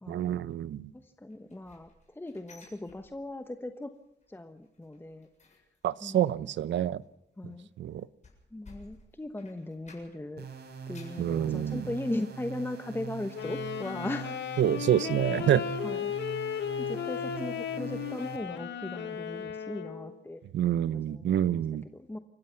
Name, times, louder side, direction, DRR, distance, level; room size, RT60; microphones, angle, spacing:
voice 1, 0.1-0.9 5.8-7.0 7.8-8.1 11.2-11.9 14.6-15.6 20.5-21.8, right 11 dB, 85° right, 18 dB, 0.7 m, -27 dB
voice 2, 0.9-3.9 4.3-5.3 6.0-6.3 7.4-7.7 8.5-10.5 10.9-14.4 15.2-15.5 15.8-20.4 20.9-21.4 21.9-22.2, left 1 dB, 10° left, 7 dB, 1.2 m, -38 dB
sound 1, 1.3-3.6 3.9-4.3 4.6-10.4 10.7-11.3 11.8-11.9 12.3-12.4, left 3 dB, 40° left, 7.6 m, -57 dB
sound 2, 10.4-18.4, right 6 dB, 65° right, 4.8 m, -43 dB
Wind instrument woodwind instrument, 13.3-20.2, left 8 dB, 80° left, 2.1 m, -35 dB
29.0 x 15.5 x 5.8 m, 0.84 s
cardioid pair, 105°, 18 cm